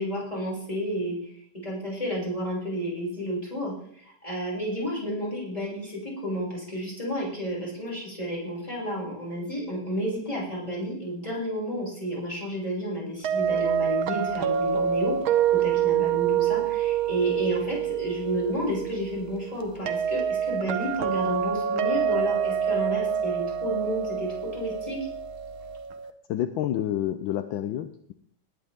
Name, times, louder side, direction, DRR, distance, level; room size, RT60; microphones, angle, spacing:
voice 1, 0.0-15.1 15.5-25.0, equal, 15° left, -5 dB, 6.5 m, -31 dB
sound 1, 13.2-26.1, right 8 dB, 85° right, 1.9 m, -27 dB
voice 2, 26.3-28.1, left 11 dB, 75° left, 10 dB, 1.4 m, -29 dB
19.0 x 10.5 x 3.7 m, 0.64 s
omnidirectional pair, 2.2 m